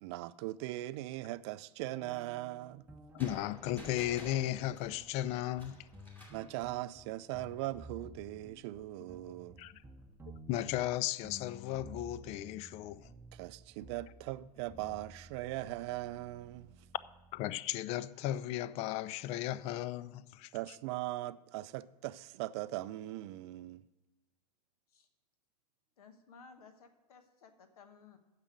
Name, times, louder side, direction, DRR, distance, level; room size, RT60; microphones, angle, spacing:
voice 1, 0.0-2.8 6.3-9.6 13.3-16.8 20.5-23.8, right 16 dB, 45° right, 0.4 m, -40 dB
sound 1, 2.0-17.5, equal, 10° right, 0.9 m, -54 dB
voice 2, 3.1-5.8 9.6-9.8 10.5-13.1 17.3-20.5, left 13 dB, 30° left, 0.3 m, -35 dB
sound 2, 3.2-6.5, equal, 10° left, 2.4 m, -51 dB
voice 3, 26.0-28.2, left 5 dB, 65° left, 1.2 m, -57 dB
9.8 x 6.7 x 6.0 m
figure-of-eight pair, 90°, 21 cm